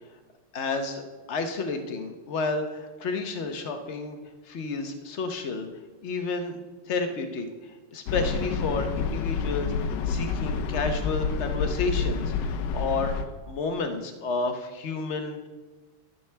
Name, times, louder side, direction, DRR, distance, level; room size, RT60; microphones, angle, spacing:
voice 1, 0.5-1.0 1.3-4.2 4.4-5.7 6.0-6.6 6.9-7.5 7.9-9.7 10.1-15.5, left 3 dB, 50° left, 6 dB, 0.9 m, -31 dB
sound 1, 8.1-13.2, left 5 dB, 70° left, 1.2 m, -28 dB
13.0 x 4.6 x 6.6 m, 1.2 s
omnidirectional pair, 2.3 m